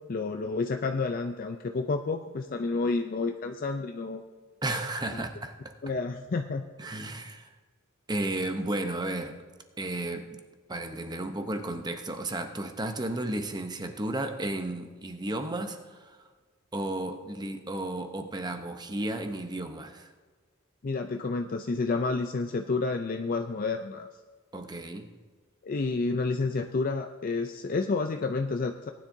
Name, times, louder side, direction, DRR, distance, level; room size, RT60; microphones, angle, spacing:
voice 1, 0.1-4.2 5.1-5.2 5.8-6.7 20.8-24.1 25.6-28.9, left 3 dB, 40° left, 6 dB, 0.4 m, -30 dB
voice 2, 4.6-5.7 6.8-7.5 8.1-9.4 9.8-10.4 10.7-16.2 16.7-20.1 24.5-25.1, right 1 dB, 20° right, 7 dB, 0.7 m, -33 dB
18.5 x 10.0 x 2.7 m, 1.4 s
head